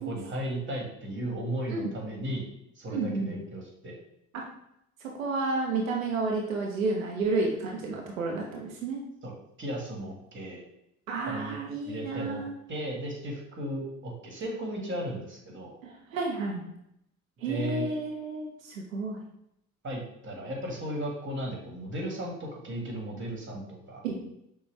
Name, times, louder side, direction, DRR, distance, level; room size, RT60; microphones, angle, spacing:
voice 1, 0.0-2.5 2.8-4.0 9.2-10.6 11.2-11.6 11.8-12.4 12.7-15.8 17.4-17.9 19.8-24.0, right 1 dB, 30° right, 0 dB, 1.7 m, -35 dB
voice 2, 2.9-3.3 4.3-4.4 5.2-9.0 11.1-12.5 15.8-16.6 17.4-19.2 24.0-24.2, right 3 dB, 85° right, -1 dB, 0.7 m, -31 dB
6.2 x 2.3 x 3.2 m, 0.79 s
hypercardioid pair, 55°, 39 cm